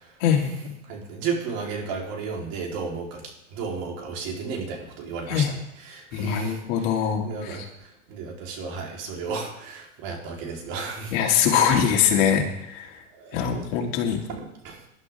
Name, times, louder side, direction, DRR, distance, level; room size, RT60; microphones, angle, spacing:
voice 1, 0.2-0.7 5.3-5.5 6.1-7.6 11.1-13.0 13.3-14.2, left 8 dB, 50° left, 1 dB, 2.7 m, -23 dB
voice 2, 0.9-3.2 3.5-5.5 5.8-6.6 7.2-7.7 8.1-11.2 13.1-13.4 14.3-14.8, right 5 dB, 50° right, -1 dB, 3.9 m, -33 dB
19.5 x 11.5 x 3.6 m, 0.84 s
hypercardioid pair, 115°, 39 cm